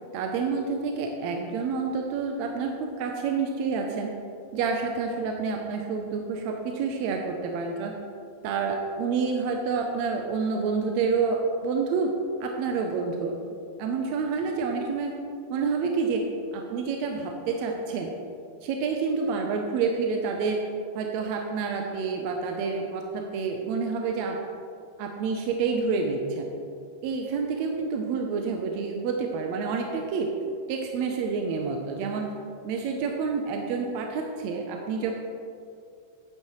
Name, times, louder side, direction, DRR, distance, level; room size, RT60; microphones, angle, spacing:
voice 1, 0.1-4.2 4.5-8.0 8.4-12.1 12.4-13.3 13.8-15.1 15.5-16.3 16.5-18.1 18.6-20.6 20.9-24.4 25.0-26.5 27.0-30.3 30.7-32.3 32.6-35.2, right 5 dB, 75° right, 2 dB, 1.7 m, -28 dB
10.0 x 8.6 x 3.0 m, 2.5 s
omnidirectional pair, 3.6 m